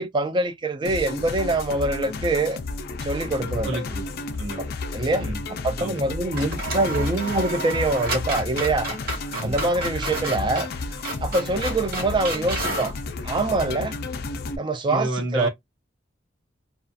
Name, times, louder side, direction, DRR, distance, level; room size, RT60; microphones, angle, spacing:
voice 1, 0.0-2.6 3.0-3.8 4.9-5.3 5.6-8.9 9.4-10.7 11.2-12.9 13.2-14.0 14.6-15.5, right 2 dB, 25° right, 0.3 m, -24 dB
sound 1, 0.8-14.6, left 3 dB, 55° left, 0.4 m, -32 dB
sound 2, 3.2-4.1 4.3-4.4 5.9-6.1 6.3-13.0, right 1 dB, 55° right, 1.2 m, -32 dB
voice 2, 3.6-4.6 5.2-5.4 5.8-6.0 9.3-9.6 14.9-15.5, right 2 dB, 85° right, 1.0 m, -30 dB
2.3 x 2.3 x 2.5 m
head